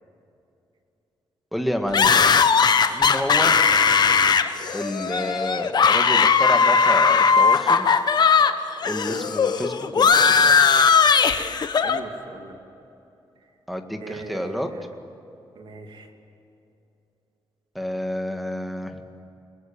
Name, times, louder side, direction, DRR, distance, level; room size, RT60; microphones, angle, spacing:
voice 1, 1.5-2.2 2.9-3.6 4.7-7.9 8.8-10.6 13.7-14.7 17.7-19.0, equal, ahead, 4 dB, 2.0 m, -29 dB
sound 1, 1.9-8.5 8.8-12.0, left 6 dB, 50° left, 1.2 m, -18 dB
voice 2, 11.7-12.6 14.0-14.8 15.5-16.1, right 4 dB, 65° right, 4 dB, 2.9 m, -39 dB
29.5 x 20.5 x 8.8 m, 2.9 s
wide cardioid pair, 135°, 9 cm